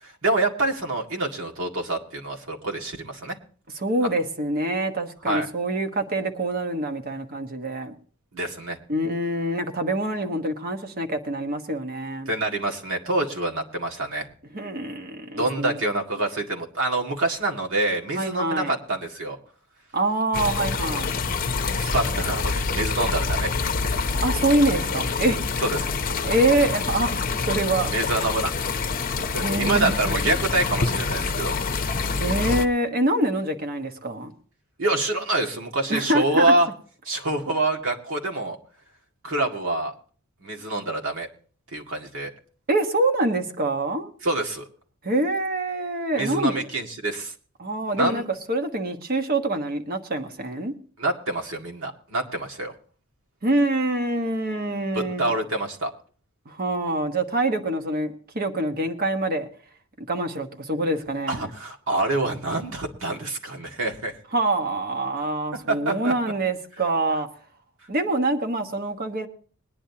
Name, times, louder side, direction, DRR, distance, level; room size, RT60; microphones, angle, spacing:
voice 1, 0.0-3.4 5.3-5.5 8.3-8.8 12.3-14.3 15.4-19.4 21.7-23.5 23.8-23.9 25.6-25.9 27.9-28.5 29.2-32.0 34.8-36.7 37.1-38.6 39.2-39.9 40.4-41.3 41.7-42.3 44.2-44.7 46.1-47.3 48.0-48.2 51.0-52.7 54.9-55.9 61.3-64.1 65.7-66.1, right 2 dB, 65° right, 2.0 m, -26 dB
voice 2, 3.7-7.9 8.9-12.3 14.5-15.8 18.1-18.8 19.9-21.2 24.2-25.4 26.2-27.9 29.4-30.4 32.2-34.3 35.9-36.5 42.7-44.1 45.0-46.7 47.6-48.2 48.5-50.7 53.4-55.3 56.5-59.5 60.0-61.5 64.3-67.3 67.9-69.3, right 2 dB, 45° right, 1.2 m, -25 dB
sound 1, 20.3-32.7, left 4 dB, 40° left, 0.7 m, -26 dB
21.5 x 10.0 x 2.8 m
head